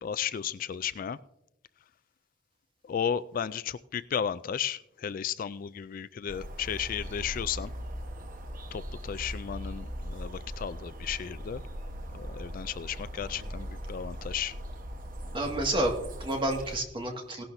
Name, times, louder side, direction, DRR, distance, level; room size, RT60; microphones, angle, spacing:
voice 1, 0.0-1.2 2.9-7.7 8.7-11.6 12.1-14.6, left 8 dB, 45° left, 16 dB, 0.3 m, -34 dB
sound 1, 6.3-16.8, equal, 45° right, 1.2 m, -40 dB
voice 2, 15.3-17.4, right 1 dB, 25° right, 2 dB, 1.9 m, -30 dB
17.5 x 11.5 x 2.7 m, 0.83 s
head